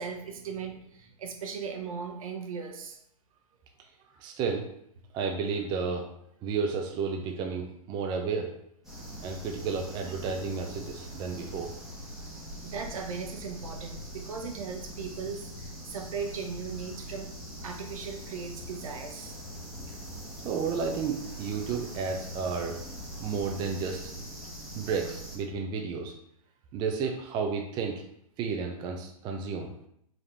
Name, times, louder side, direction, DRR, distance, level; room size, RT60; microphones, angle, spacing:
voice 1, 0.0-3.0 10.1-10.2 12.6-19.4, right 6 dB, 65° right, 3 dB, 1.0 m, -38 dB
voice 2, 4.2-4.7 5.1-6.1 6.4-8.5 9.2-11.7 20.4-22.8 23.2-24.0 24.7-26.1 26.7-27.9 28.4-29.7, right 5 dB, 25° right, 2 dB, 0.5 m, -32 dB
sound 1, 8.8-25.4, equal, ahead, 1.2 m, -42 dB
4.9 x 2.8 x 3.3 m, 0.72 s
hypercardioid pair, 130°, 19 cm